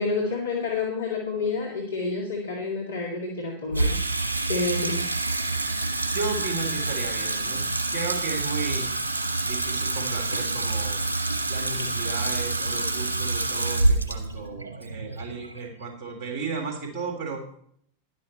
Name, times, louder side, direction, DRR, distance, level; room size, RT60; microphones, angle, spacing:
voice 1, 0.0-4.0 4.5-5.2, left 3 dB, 70° left, -3 dB, 2.2 m, -29 dB
Water tap faucet / Sink (filling or washing), 3.7-16.1, right 2 dB, 75° right, 1.4 m, -27 dB
voice 2, 6.1-7.6 7.9-8.8 9.4-11.0 11.5-17.4, right 4 dB, 40° right, 2 dB, 3.3 m, -34 dB
12.0 x 9.7 x 4.3 m, 0.65 s
figure-of-eight pair, 90°, 0 cm